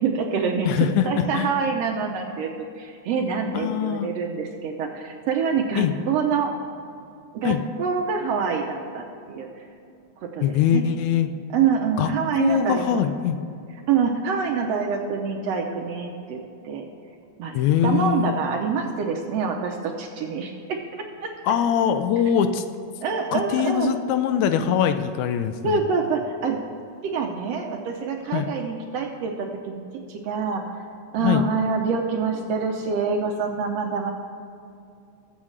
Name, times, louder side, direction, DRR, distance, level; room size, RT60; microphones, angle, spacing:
voice 1, 0.0-2.5 2.8-6.5 7.3-9.5 10.3-10.4 10.7-10.9 11.5-13.0 13.9-16.8 17.4-17.6 17.8-21.3 23.0-23.9 25.6-26.6 27.0-29.8 30.1-30.8 31.1-34.1, right 5 dB, 75° right, 3 dB, 1.6 m, -26 dB
voice 2, 0.7-1.5 3.5-4.1 5.8-6.0 7.4-7.6 10.4-11.3 12.0-12.1 12.4-13.4 17.5-18.4 21.5-22.6 23.3-25.8 28.3-28.5 31.2-31.4, left 9 dB, 80° left, 9 dB, 1.8 m, -22 dB
21.0 x 7.4 x 3.2 m, 2.6 s
omnidirectional pair, 3.4 m